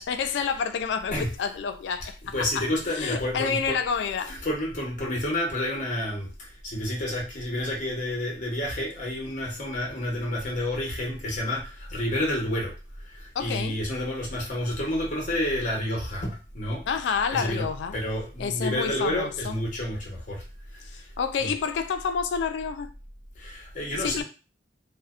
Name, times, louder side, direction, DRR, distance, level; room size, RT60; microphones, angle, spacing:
voice 1, 0.0-4.3 13.4-13.8 16.9-18.0 18.4-19.5 20.9-22.9 23.9-24.2, left 6 dB, 70° left, 0.3 m, -29 dB
voice 2, 2.3-3.7 4.3-12.7 13.0-16.8 17.3-17.6 17.9-20.4 20.7-21.0 21.4-21.5 23.4-24.2, left 1 dB, 45° left, 0.8 m, -29 dB
2.6 x 2.0 x 2.3 m
head